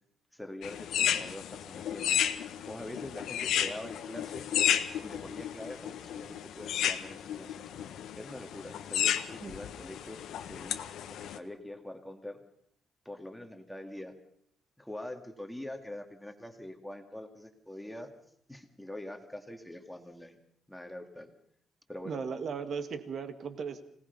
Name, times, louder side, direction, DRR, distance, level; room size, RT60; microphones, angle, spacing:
voice 1, 0.3-2.2 2.7-4.5 5.0-7.6 8.2-10.2 10.5-12.4 13.1-14.1 14.8-18.1 18.5-20.4 20.7-21.3 21.9-22.2, left 1 dB, ahead, 4 dB, 2.2 m, -44 dB
sound 1, 0.6-11.4, left 10 dB, 90° left, 1.3 m, -33 dB
voice 2, 22.1-23.8, right 6 dB, 45° right, 9 dB, 1.9 m, -36 dB
26.0 x 18.5 x 5.4 m, 0.66 s
cardioid pair, 170°, 0 cm